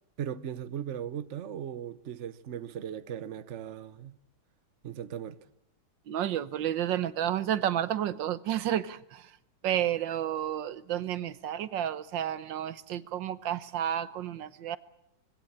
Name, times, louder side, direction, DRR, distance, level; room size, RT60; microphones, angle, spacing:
voice 1, 0.2-4.2 4.8-5.4, right 9 dB, 50° right, 1.1 m, -38 dB
voice 2, 6.1-9.4 9.6-14.8, right 11 dB, 90° right, 1.7 m, -31 dB
23.0 x 17.0 x 8.6 m
omnidirectional pair, 1.9 m